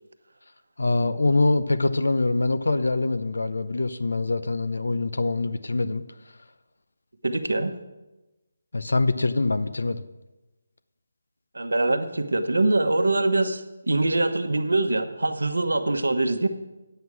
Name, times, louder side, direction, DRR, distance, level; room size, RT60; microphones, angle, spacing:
voice 1, 0.8-6.0 8.7-10.0, left 2 dB, 80° left, 12 dB, 0.7 m, -24 dB
voice 2, 7.2-7.7 11.5-16.5, right 2 dB, 85° right, 7 dB, 1.1 m, -23 dB
9.5 x 8.0 x 6.1 m, 1.0 s
figure-of-eight pair, 160°, 0 cm